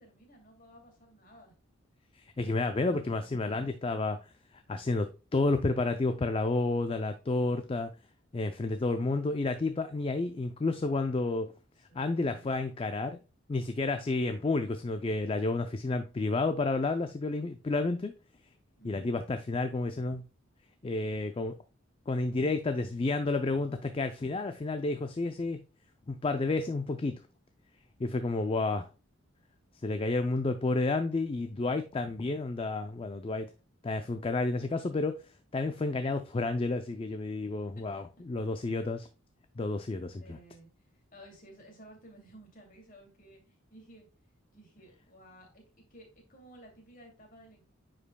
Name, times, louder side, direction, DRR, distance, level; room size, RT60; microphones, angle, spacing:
voice 1, 0.0-1.5 11.9-12.6 18.8-19.1 37.7-37.8 38.4-38.5 40.2-44.1 44.5-47.6, right 1 dB, 40° left, 2.5 m, -55 dB
voice 2, 2.1-4.2 4.5-7.9 8.3-11.5 11.9-13.2 13.5-18.1 18.8-20.2 20.8-21.5 22.1-25.6 26.1-27.2 28.0-28.9 29.8-33.5 33.8-35.2 35.5-39.1 39.6-40.4, left 3 dB, 25° left, 0.4 m, -30 dB
9.7 x 5.1 x 2.2 m
head